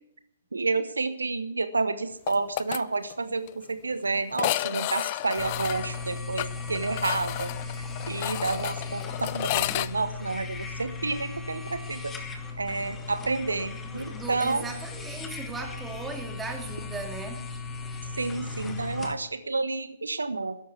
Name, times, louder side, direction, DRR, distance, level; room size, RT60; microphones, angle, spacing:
voice 1, 0.5-7.5 8.1-12.1 12.6-14.6 18.2-20.6, right 3 dB, 70° right, 12 dB, 1.1 m, -30 dB
sound 1, 2.3-2.8 3.1-3.2 3.5-3.6 4.3-9.9, left 17 dB, 35° left, 0.5 m, -31 dB
sound 2, 5.4-19.1, left 4 dB, 10° left, 1.8 m, -37 dB
voice 2, 13.9-17.5, right 4 dB, 10° right, 4 dB, 2.4 m, -37 dB
13.5 x 11.0 x 8.3 m, 0.71 s
figure-of-eight pair, 125°, 0 cm